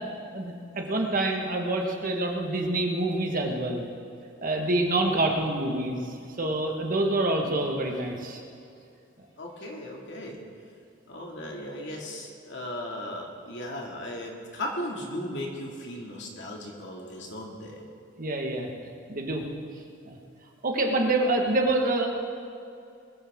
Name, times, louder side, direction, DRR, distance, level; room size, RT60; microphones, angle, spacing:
voice 1, 0.0-3.9 4.4-6.0 6.4-8.4 18.2-18.7 19.1-19.4 20.0-20.2 20.6-22.1, right 2 dB, 45° right, 1 dB, 1.7 m, -26 dB
voice 2, 9.4-10.4 11.1-17.8, left 1 dB, 65° left, -1 dB, 2.5 m, -36 dB
21.0 x 14.0 x 3.8 m, 2.5 s
head